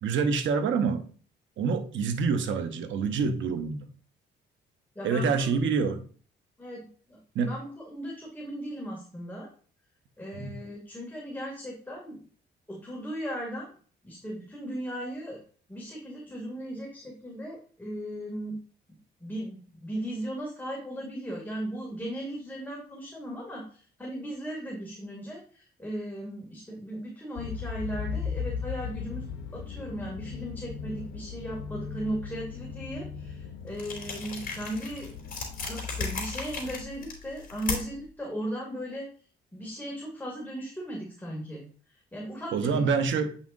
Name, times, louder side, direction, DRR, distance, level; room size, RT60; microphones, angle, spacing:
voice 1, 0.0-1.1 1.6-3.9 5.0-6.1 7.3-7.5 10.3-10.6 42.5-43.4, right 5 dB, 70° right, 1.0 m, -27 dB
voice 2, 5.0-5.6 6.6-9.5 10.2-12.2 12.7-13.7 14.0-15.4 15.7-18.6 19.2-29.2 29.5-35.1 35.7-39.1 39.5-43.0, equal, 10° left, 2.4 m, -37 dB
sound 1, 27.4-36.8, left 6 dB, 75° left, 0.9 m, -38 dB
sound 2, 33.7-38.1, left 4 dB, 45° left, 3.4 m, -37 dB
8.6 x 5.7 x 2.6 m
cardioid pair, 90°, 20 cm